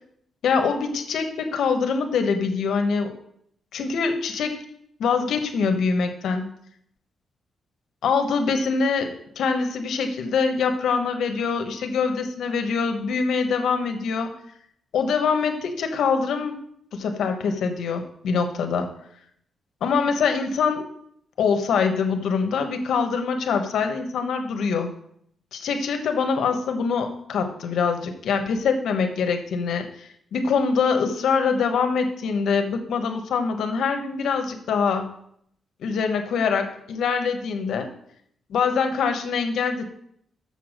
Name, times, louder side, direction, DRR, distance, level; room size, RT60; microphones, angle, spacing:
voice 1, 0.4-3.1 3.7-4.6 5.0-6.5 8.0-14.3 14.9-16.6 16.9-18.9 19.8-20.9 21.4-24.9 25.5-35.1 35.8-37.9 38.5-39.9, left 5 dB, 80° left, 6 dB, 1.1 m, -24 dB
6.9 x 6.9 x 6.3 m, 0.70 s
wide cardioid pair, 155°, 0 cm